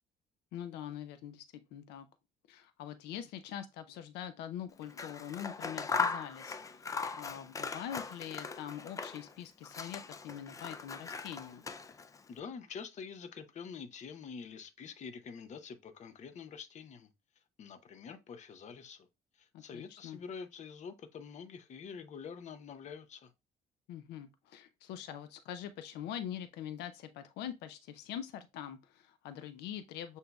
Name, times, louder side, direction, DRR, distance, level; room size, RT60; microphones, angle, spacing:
voice 1, 0.5-1.4 1.7-2.1 2.5-11.6 19.5-20.2 23.9-30.2, left 10 dB, 85° left, 0.5 m, -44 dB
Scissors, 4.8-9.3 9.6-12.2, left 5 dB, 20° left, 0.3 m, -39 dB
voice 2, 12.3-17.1 17.4-19.1 19.3-23.3, left 6 dB, 45° left, 0.7 m, -46 dB
7.7 x 2.7 x 2.3 m
cardioid pair, 110°, 17 cm